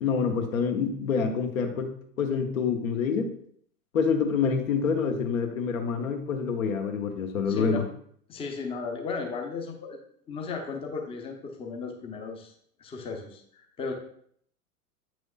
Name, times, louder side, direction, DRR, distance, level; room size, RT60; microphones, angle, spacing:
voice 1, 0.0-3.3 3.9-7.9, left 5 dB, 60° left, 5 dB, 1.0 m, -27 dB
voice 2, 7.5-7.8 8.3-10.0 10.3-12.5 12.8-13.9, left 4 dB, 10° left, 2 dB, 0.7 m, -35 dB
8.6 x 6.2 x 2.4 m, 0.62 s
figure-of-eight pair, 95°, 47 cm